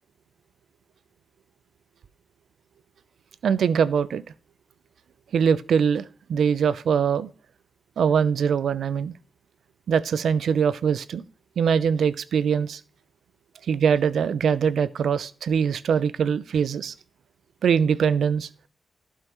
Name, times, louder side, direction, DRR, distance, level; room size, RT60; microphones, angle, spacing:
voice 1, 3.4-4.2 5.3-7.3 8.0-9.1 9.9-11.2 11.6-12.8 13.7-16.9 17.6-18.7, right 7 dB, 85° right, 0.5 m, -22 dB
15.0 x 5.6 x 3.1 m
wide cardioid pair, 135°, 0 cm